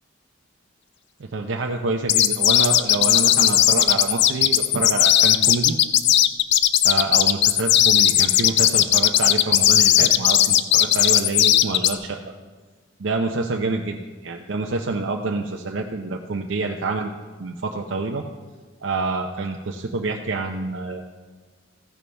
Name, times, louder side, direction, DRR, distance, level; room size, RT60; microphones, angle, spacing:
voice 1, 1.2-5.7 6.8-12.2 13.0-17.1 17.4-18.2 18.8-21.0, right 3 dB, 70° right, 2 dB, 0.6 m, -27 dB
sound 1, 2.1-11.9, left 12 dB, 60° left, 0.4 m, -17 dB
14.5 x 10.5 x 3.4 m, 1.4 s
head